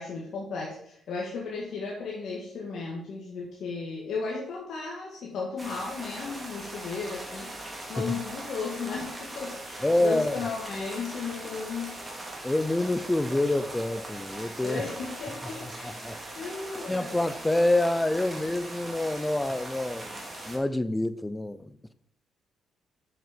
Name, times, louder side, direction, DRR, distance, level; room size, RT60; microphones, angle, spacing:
voice 1, 0.0-7.5 7.9-12.0 14.6-16.0 16.4-17.2, left 4 dB, 70° left, 1.7 m, -35 dB
sound 1, 5.6-20.6, right 1 dB, 20° right, 2.2 m, -40 dB
voice 2, 7.8-8.1 9.8-10.3 12.4-14.8 15.6-16.2 16.9-21.9, left 1 dB, 15° left, 0.5 m, -27 dB
7.1 x 6.4 x 5.2 m
cardioid pair, 90°, 0 cm